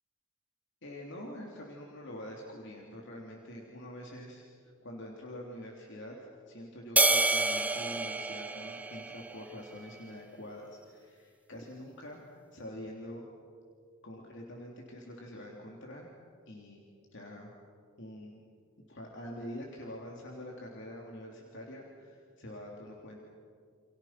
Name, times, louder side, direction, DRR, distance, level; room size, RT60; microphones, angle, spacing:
voice 1, 0.8-4.5 4.8-13.3 14.0-16.1 16.5-16.8 17.1-17.5 18.0-18.4 18.9-23.2, left 1 dB, 60° left, -1 dB, 3.3 m, -45 dB
sound 1, 7.0-9.6, right 2 dB, 5° right, 0.9 m, -28 dB
29.5 x 29.0 x 6.0 m, 2.1 s
head